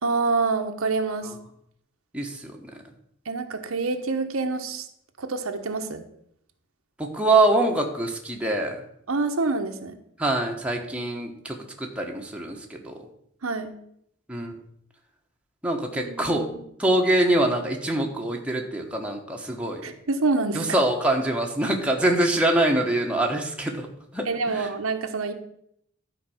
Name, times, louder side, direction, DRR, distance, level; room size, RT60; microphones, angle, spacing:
voice 1, 0.0-1.3 3.2-4.9 5.2-6.0 9.1-10.0 13.4-13.7 16.0-16.6 19.8-20.8 24.2-25.3, right 3 dB, 90° right, 5 dB, 1.1 m, -27 dB
voice 2, 2.1-2.5 7.0-8.8 10.2-13.0 14.3-14.6 15.6-16.5 16.8-19.8 20.5-23.9 24.1-24.7, right 1 dB, 5° right, 0 dB, 1.3 m, -24 dB
12.0 x 4.8 x 7.2 m, 0.72 s
head